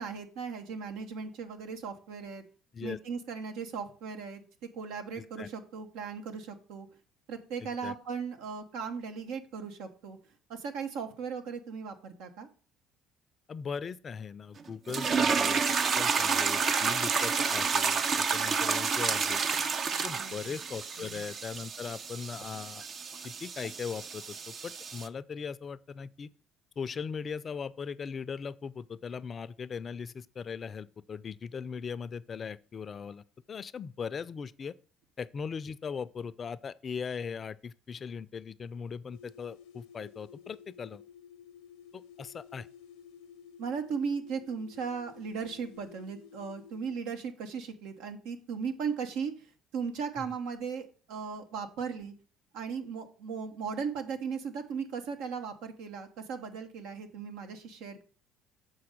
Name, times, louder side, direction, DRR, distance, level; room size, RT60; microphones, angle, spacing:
voice 1, 0.0-2.4 2.8-4.4 4.7-6.9 7.3-10.2 10.5-12.5 20.1-20.6 21.0-21.3 43.6-49.3 49.7-52.1 52.5-58.0, right 6 dB, 80° right, 1.1 m, -37 dB
voice 2, 5.2-5.5 7.6-7.9 13.5-19.4 19.9-22.8 23.2-26.3 26.8-34.7 35.2-41.0 41.9-42.7 50.2-50.3, left 6 dB, 40° left, 0.4 m, -39 dB
sound 1, 14.9-25.1, right 5 dB, 45° right, 0.6 m, -30 dB
sound 2, 39.1-46.9, left 8 dB, 80° left, 0.7 m, -53 dB
6.9 x 4.2 x 6.5 m
supercardioid pair, 75°, 0 cm